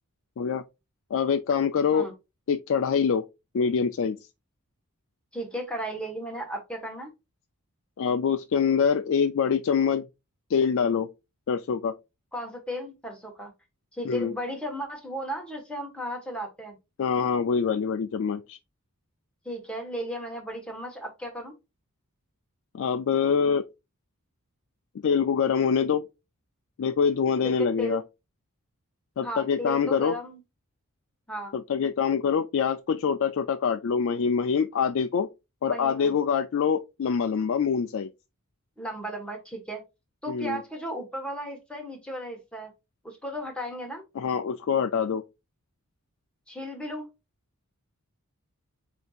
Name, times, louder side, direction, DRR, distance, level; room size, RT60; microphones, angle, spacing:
voice 1, 1.1-2.1 2.5-3.2 3.5-4.2 8.0-10.1 10.5-11.1 11.5-11.9 14.1-14.3 17.0-18.6 22.7-23.6 25.0-26.0 26.8-28.0 29.2-30.2 31.5-35.3 35.6-38.1 40.3-40.6 44.2-45.2, left 6 dB, 60° left, 0.4 m, -25 dB
voice 2, 5.3-7.1 12.3-13.5 13.9-16.8 19.4-21.5 27.4-28.0 29.2-30.4 31.3-31.6 35.6-36.1 38.8-39.8 40.2-42.7 43.0-44.0 46.5-47.1, equal, 5° left, 1.3 m, -35 dB
7.8 x 2.8 x 2.4 m
head